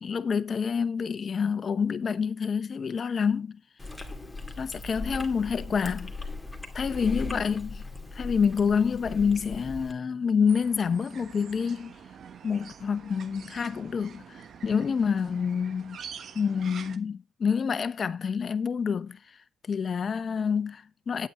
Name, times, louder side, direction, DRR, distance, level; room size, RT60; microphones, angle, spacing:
voice 1, 0.0-3.6 4.6-6.1 6.7-7.8 8.1-11.9 12.4-16.0 16.3-19.2 19.7-21.3, left 6 dB, 45° left, 0.9 m, -27 dB
Chewing mastication, 3.8-9.9, left 3 dB, 10° left, 2.3 m, -38 dB
sound 1, 10.5-17.0, right 7 dB, 60° right, 1.2 m, -46 dB
9.6 x 8.5 x 4.3 m
cardioid pair, 90°, 0 cm